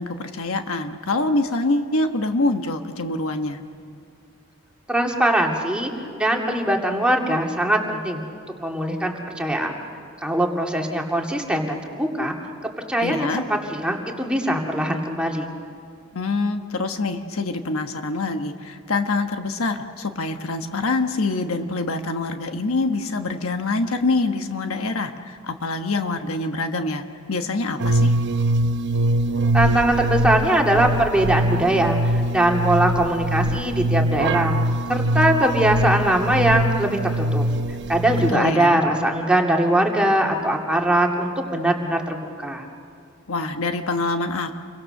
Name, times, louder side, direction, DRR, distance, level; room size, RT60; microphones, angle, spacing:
voice 1, 0.0-3.6 13.0-13.4 16.1-27.0 27.3-28.1 38.3-38.8 43.3-44.5, left 2 dB, 70° left, 6 dB, 1.2 m, -25 dB
voice 2, 4.9-8.2 8.6-9.8 10.2-12.4 12.9-15.5 29.5-34.6 34.9-37.4 37.9-42.7, right 1 dB, 5° right, 0 dB, 2.3 m, -21 dB
sound 1, 27.8-38.3, right 1 dB, 55° right, 0.9 m, -22 dB
29.0 x 23.5 x 6.6 m, 2.4 s
head